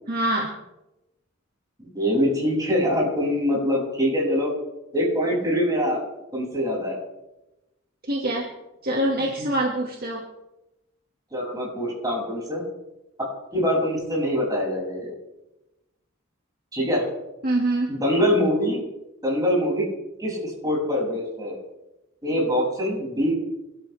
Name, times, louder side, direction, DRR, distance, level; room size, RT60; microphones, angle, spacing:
voice 1, 0.1-0.6 8.1-8.5 8.8-10.3 17.4-18.0, right 1 dB, 45° right, -1 dB, 2.1 m, -25 dB
voice 2, 1.8-4.5 4.9-6.0 6.3-7.0 9.3-9.5 11.3-12.6 13.5-15.1 16.7-17.1 17.9-18.8 19.2-19.8 20.2-21.6 22.2-23.4, equal, 20° right, -3 dB, 7.1 m, -24 dB
26.5 x 12.5 x 3.5 m, 0.96 s
head